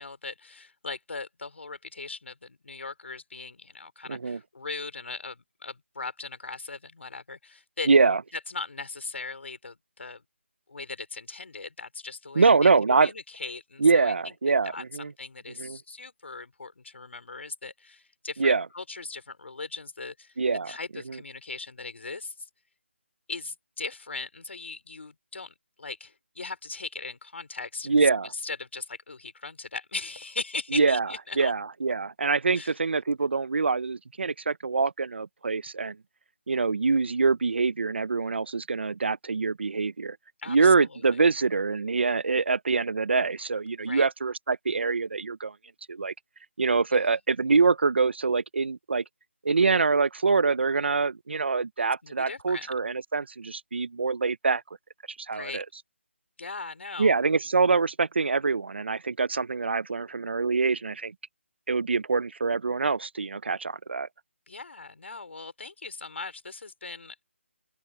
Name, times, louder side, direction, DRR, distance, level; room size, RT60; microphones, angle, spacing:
voice 1, 0.0-7.9 8.5-10.2 10.7-12.7 12.9-14.1 14.6-20.4 20.7-22.5 23.3-31.5 32.5-32.7 40.4-41.2 43.8-44.1 46.9-47.1 52.0-52.7 55.3-55.6 56.4-57.1 64.5-67.1, left 3 dB, 65° left, 5.1 m, -39 dB
voice 2, 4.1-4.4 7.9-8.2 12.4-13.1 13.8-15.1 15.6-15.8 18.4-18.7 20.4-20.7 21.1-21.2 27.9-28.3 30.7-31.1 31.4-36.0 36.5-40.2 40.5-45.5 45.9-46.1 46.6-49.0 49.4-54.6 55.2-55.6 57.0-61.1 61.7-64.1, right 4 dB, 55° right, 0.9 m, -24 dB
open air
hypercardioid pair, 175°, 7 cm